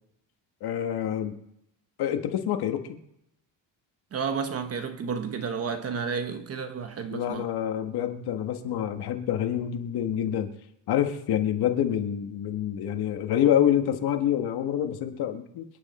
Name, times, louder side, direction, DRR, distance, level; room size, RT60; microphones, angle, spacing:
voice 1, 0.6-1.4 2.0-2.8 7.1-10.5 10.9-15.6, left 10 dB, 55° left, 1.7 m, -27 dB
voice 2, 4.1-7.5, right 6 dB, 30° right, 1.0 m, -31 dB
27.0 x 10.0 x 4.3 m
cardioid pair, 180°, 46 cm